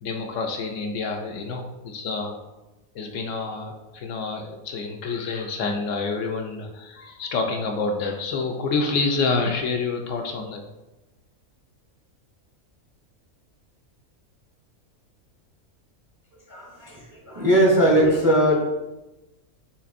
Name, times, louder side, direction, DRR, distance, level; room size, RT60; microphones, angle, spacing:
voice 1, 0.0-2.4 2.9-10.6, left 4 dB, 70° left, 3 dB, 0.9 m, -28 dB
voice 2, 16.3-18.5, right 1 dB, 20° right, -3 dB, 0.6 m, -20 dB
5.8 x 3.3 x 2.5 m, 1.0 s
omnidirectional pair, 1.4 m